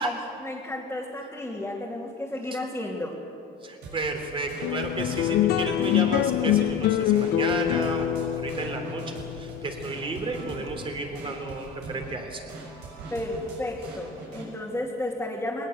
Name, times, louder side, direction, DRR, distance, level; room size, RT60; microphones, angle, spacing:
voice 1, 0.0-3.2 13.1-15.7, left 1 dB, 10° left, -5 dB, 2.8 m, -32 dB
voice 2, 3.6-9.0 9.4-12.4, right 3 dB, 30° right, 4 dB, 3.4 m, -32 dB
sound 1, 3.8-14.5, right 2 dB, 85° right, 6.8 m, -42 dB
sound 2, 4.6-11.3, left 11 dB, 75° left, 0.9 m, -25 dB
20.0 x 19.5 x 8.0 m, 2.8 s
cardioid pair, 110°, 17 cm